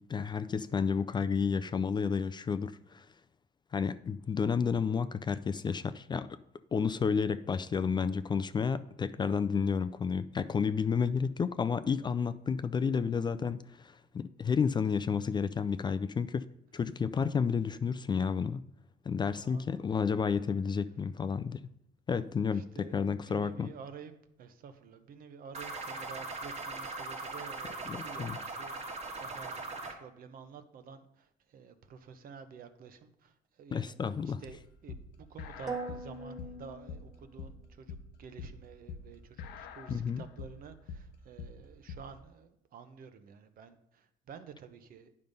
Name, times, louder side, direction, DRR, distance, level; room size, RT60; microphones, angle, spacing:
voice 1, 0.1-3.1 3.7-6.4 6.7-16.4 16.7-18.6 19.1-21.7 22.1-23.7 27.9-28.4 33.7-34.4 39.9-40.2, left 6 dB, 25° left, 12 dB, 0.4 m, -31 dB
voice 2, 19.4-19.8 22.5-24.1 24.4-34.0 34.2-45.1, right 6 dB, 55° right, 10 dB, 0.9 m, -50 dB
sound 1, 25.5-29.9, right 3 dB, 40° right, 1.5 m, -40 dB
sound 2, 34.4-42.2, left 5 dB, 85° left, 0.9 m, -45 dB
sound 3, 35.7-37.6, right 3 dB, 20° right, 0.9 m, -41 dB
9.6 x 5.4 x 5.3 m, 0.76 s
cardioid pair, 110°, 17 cm